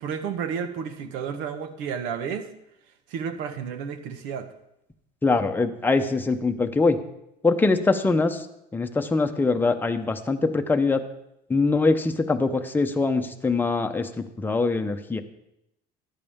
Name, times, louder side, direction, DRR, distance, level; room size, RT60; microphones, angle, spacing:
voice 1, 0.0-2.5 3.1-4.5, right 7 dB, 90° right, 9 dB, 1.3 m, -31 dB
voice 2, 5.2-7.0 7.4-8.5 8.7-11.0 11.5-15.2, left 3 dB, 10° left, 6 dB, 0.7 m, -23 dB
14.0 x 11.0 x 3.6 m, 0.82 s
cardioid pair, 145°, 19 cm